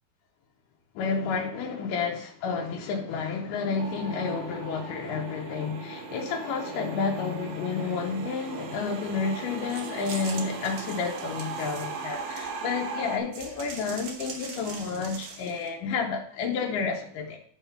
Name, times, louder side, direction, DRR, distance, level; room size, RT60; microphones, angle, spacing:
voice 1, 1.0-17.4, left 5 dB, 75° left, 2.1 m, -30 dB
sound 1, 3.8-13.2, right 4 dB, 80° right, 2.5 m, -38 dB
sound 2, 9.7-12.8 13.3-15.7, right 5 dB, 65° right, 2.1 m, -42 dB
9.9 x 3.5 x 5.5 m
omnidirectional pair, 4.2 m